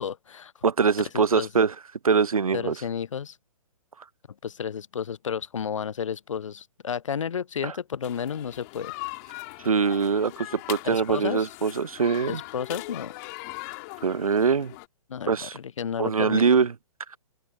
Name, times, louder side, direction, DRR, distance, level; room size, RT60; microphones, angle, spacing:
voice 1, 0.0-0.5 1.1-1.5 2.5-3.4 4.4-8.9 10.8-11.5 12.3-13.1 15.1-16.4, left 7 dB, 60° left, 0.7 m, -32 dB
voice 2, 0.6-1.7 2.0-2.7 7.6-7.7 9.6-12.4 14.0-14.7 15.3-15.6 16.0-16.7, right 5 dB, 85° right, 0.4 m, -23 dB
sound 1, 8.0-14.9, left 29 dB, 30° left, 3.0 m, -40 dB
open air
figure-of-eight pair, 125°, 18 cm